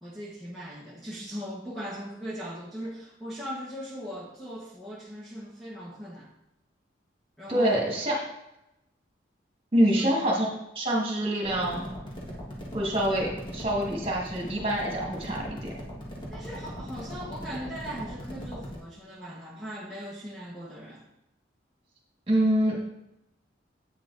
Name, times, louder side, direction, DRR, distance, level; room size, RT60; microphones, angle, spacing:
voice 1, 0.0-6.3 7.4-7.8 9.9-10.1 16.3-21.0, equal, ahead, -6 dB, 1.2 m, -39 dB
voice 2, 7.5-8.2 9.7-10.5 10.7-11.8 12.7-15.7 22.3-22.7, right 1 dB, 30° right, -2 dB, 2.1 m, -25 dB
sound 1, 11.4-18.8, equal, 25° left, 1.7 m, -40 dB
8.5 x 5.8 x 4.0 m, 0.87 s
head